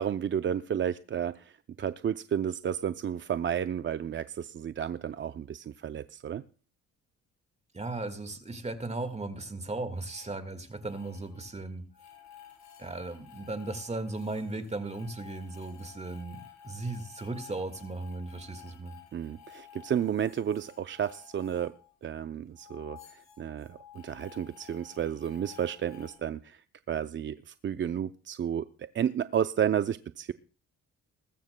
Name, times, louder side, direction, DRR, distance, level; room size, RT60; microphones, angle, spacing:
voice 1, 0.0-1.5 1.8-6.4 19.1-21.7 22.0-30.3, right 9 dB, 40° right, 11 dB, 0.5 m, -32 dB
voice 2, 7.7-11.8 12.8-19.0, right 2 dB, 20° right, 9 dB, 1.7 m, -36 dB
sound 1, 10.0-10.3 10.6-11.5 11.9-22.3 22.5-26.2, left 9 dB, 65° left, 7.9 m, -53 dB
20.5 x 13.5 x 2.2 m, 0.37 s
cardioid pair, 90°, 30 cm